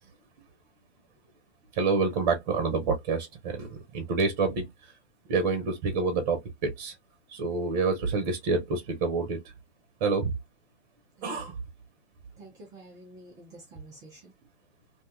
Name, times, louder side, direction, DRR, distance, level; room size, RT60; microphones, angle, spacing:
voice 1, 1.8-4.6 5.3-6.9 7.3-9.4 10.0-10.3 11.2-11.6, right 4 dB, 40° right, 0.7 m, -27 dB
voice 2, 11.2-11.5 12.4-14.3, right 1 dB, 10° right, 0.3 m, -49 dB
2.7 x 2.2 x 2.3 m
figure-of-eight pair, 115°, 34 cm